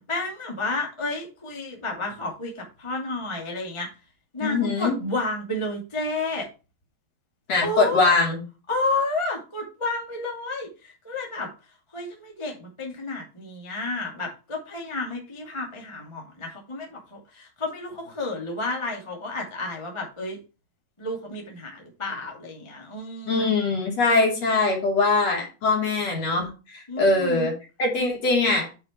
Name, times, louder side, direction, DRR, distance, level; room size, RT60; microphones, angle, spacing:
voice 1, 0.0-3.9 4.3-6.5 7.6-8.1 8.7-11.5 11.9-20.4 21.0-23.5 26.9-27.5, left 2 dB, 15° left, 0 dB, 1.0 m, -31 dB
voice 2, 4.4-5.0 7.5-8.4 23.3-27.5 27.8-28.7, left 3 dB, 40° left, 0 dB, 3.4 m, -22 dB
9.0 x 5.5 x 4.5 m, 0.31 s
omnidirectional pair, 5.2 m